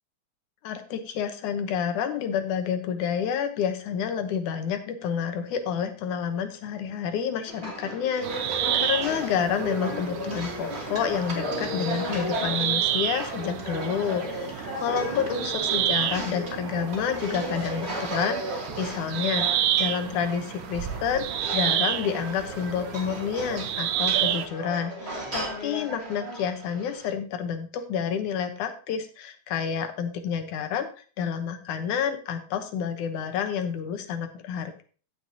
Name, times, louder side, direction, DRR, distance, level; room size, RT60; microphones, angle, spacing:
voice 1, 0.6-30.9 31.2-34.8, left 7 dB, 90° left, 7 dB, 2.6 m, -29 dB
sound 1, 7.5-27.1, right 1 dB, 20° right, 2.7 m, -35 dB
sound 2, 8.2-24.5, right 11 dB, 85° right, 2.1 m, -30 dB
17.0 x 6.0 x 2.8 m, 0.39 s
omnidirectional pair, 3.4 m